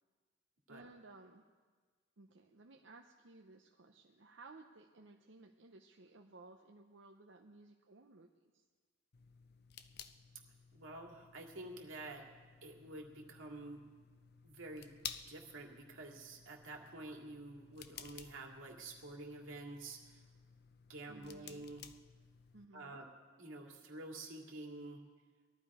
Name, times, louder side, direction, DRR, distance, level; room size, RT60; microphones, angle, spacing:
voice 1, 0.7-1.4 2.2-8.6 21.1-21.7 22.5-23.0, right 3 dB, 65° right, 3 dB, 0.7 m, -58 dB
sound 1, 9.1-22.7, left 8 dB, 55° left, 0.6 m, -55 dB
voice 2, 10.7-12.2 12.6-13.8 14.4-15.0 15.3-20.2 20.9-21.8 22.7-23.1 23.4-25.0, right 2 dB, 90° right, 1 dB, 2.3 m, -49 dB
20.5 x 13.0 x 4.9 m, 1.5 s
head